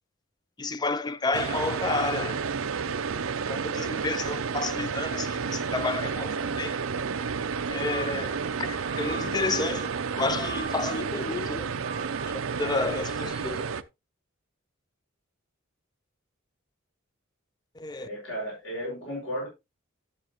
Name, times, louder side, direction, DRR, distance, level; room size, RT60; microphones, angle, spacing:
voice 1, 0.6-2.4 3.5-6.8 7.7-11.7 12.6-13.6 17.8-18.1, left 3 dB, 20° left, 0.4 m, -30 dB
sound 1, 1.3-13.8, right 5 dB, 85° right, 0.6 m, -31 dB
sound 2, 7.5-13.5, right 4 dB, 40° right, 0.6 m, -43 dB
voice 2, 18.0-19.5, equal, 70° left, 4.8 m, -34 dB
11.5 x 7.2 x 3.0 m
head